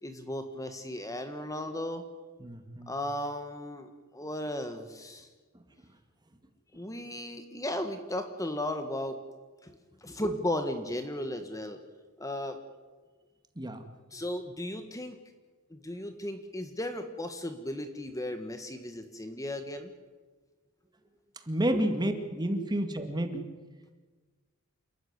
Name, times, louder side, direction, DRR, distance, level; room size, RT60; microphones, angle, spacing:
voice 1, 0.0-2.0 2.9-5.3 6.7-9.2 9.6-11.8 12.2-12.6 14.1-15.2 15.7-19.9, left 1 dB, 15° left, 7 dB, 1.6 m, -35 dB
voice 2, 2.4-2.9 13.6-13.8 21.4-23.5, right 1 dB, 20° right, 7 dB, 2.1 m, -30 dB
28.5 x 14.0 x 9.7 m, 1.3 s
head